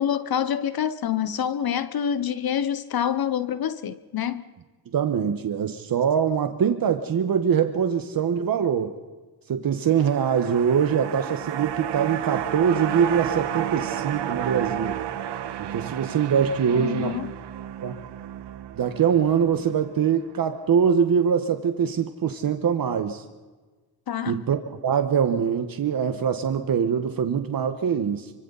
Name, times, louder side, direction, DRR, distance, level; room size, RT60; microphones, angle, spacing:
voice 1, 0.0-4.4 16.7-17.3 24.1-24.4, left 9 dB, 60° left, 1.0 m, -26 dB
voice 2, 4.9-9.0 9.5-15.0 15.6-17.2 17.8-18.0 18.7-23.2 24.3-28.3, right 7 dB, 55° right, 1.5 m, -23 dB
sound 1, 9.9-20.3 20.6-20.7, right 10 dB, 75° right, 1.3 m, -32 dB
29.5 x 24.5 x 4.2 m
cardioid pair, 110°, 42 cm